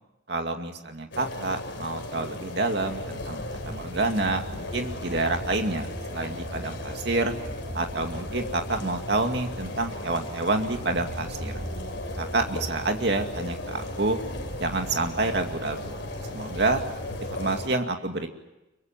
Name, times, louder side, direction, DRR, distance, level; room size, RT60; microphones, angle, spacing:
voice 1, 0.3-7.3 7.7-11.5 12.2-14.2 14.6-16.8 17.3-18.3, right 2 dB, 60° right, 4 dB, 2.4 m, -28 dB
sound 1, 1.1-17.7, left 2 dB, 75° left, 3.5 m, -37 dB
sound 2, 2.8-17.7, equal, 35° right, 4.7 m, -39 dB
25.5 x 23.5 x 7.5 m, 0.98 s
head